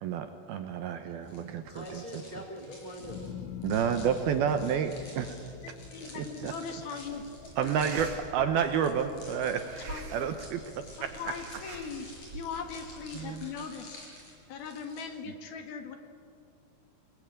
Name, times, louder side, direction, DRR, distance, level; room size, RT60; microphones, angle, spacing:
voice 1, 0.0-2.0 3.6-5.4 6.4-6.5 7.6-9.7 10.1-11.1 13.1-13.5, right 8 dB, 75° right, 8 dB, 2.4 m, -30 dB
voice 2, 1.1-3.2, equal, 90° right, 3 dB, 0.3 m, -44 dB
sound 1, 1.2-15.0, left 1 dB, 35° left, 6.9 m, -51 dB
sound 2, 3.0-9.3 9.8-10.4, left 9 dB, 85° left, 3.5 m, -45 dB
voice 3, 5.9-7.8 9.1-9.2 9.9-10.1 11.0-12.1 12.3-14.0 14.5-16.0, left 5 dB, 60° left, 6 dB, 3.2 m, -40 dB
sound 3, 7.0-13.5, right 2 dB, 40° right, 2.8 m, -46 dB
27.0 x 20.5 x 8.9 m, 2.5 s
omnidirectional pair, 5.4 m